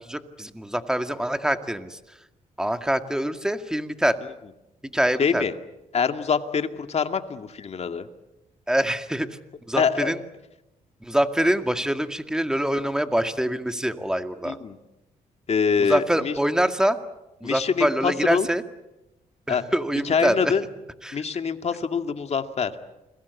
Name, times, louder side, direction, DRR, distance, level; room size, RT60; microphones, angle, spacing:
voice 1, 0.1-2.0 2.6-4.2 4.8-5.4 8.7-9.3 9.7-10.2 11.0-14.6 15.9-17.0 17.4-18.6 19.5-20.5 21.0-21.2, right 1 dB, 5° right, 7 dB, 2.2 m, -24 dB
voice 2, 5.2-5.5 5.9-8.1 9.8-10.1 14.4-14.8 15.5-16.3 17.4-18.5 19.5-19.6 20.0-20.6 21.1-22.7, left 6 dB, 45° left, 7 dB, 2.2 m, -24 dB
29.5 x 22.5 x 8.4 m, 0.96 s
cardioid pair, 85°, 15 cm